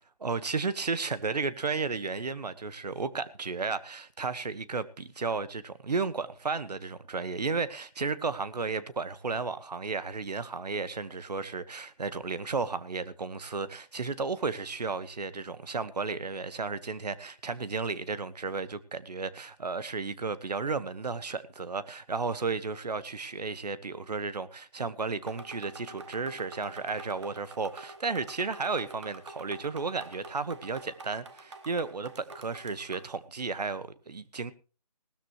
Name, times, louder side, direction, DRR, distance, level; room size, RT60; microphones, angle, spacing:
voice 1, 0.2-34.5, right 4 dB, 80° right, 1.5 m, -33 dB
sound 1, 25.3-33.2, right 3 dB, 45° right, 1.8 m, -47 dB
19.0 x 13.0 x 3.1 m
hypercardioid pair, 170°, 21 cm